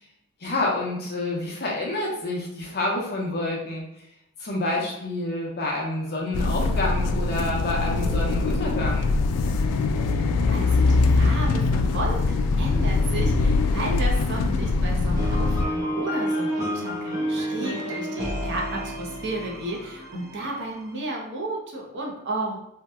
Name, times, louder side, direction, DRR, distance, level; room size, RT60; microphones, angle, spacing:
voice 1, 0.4-3.8 4.4-9.1, left 2 dB, 45° left, -2 dB, 0.7 m, -28 dB
sound 1, 6.3-15.7, left 3 dB, 85° left, 0.3 m, -22 dB
voice 2, 10.5-22.6, right 2 dB, 50° right, -1 dB, 0.7 m, -33 dB
sound 2, 15.1-21.0, equal, 15° right, 0.7 m, -30 dB
2.8 x 2.2 x 3.3 m, 0.80 s
head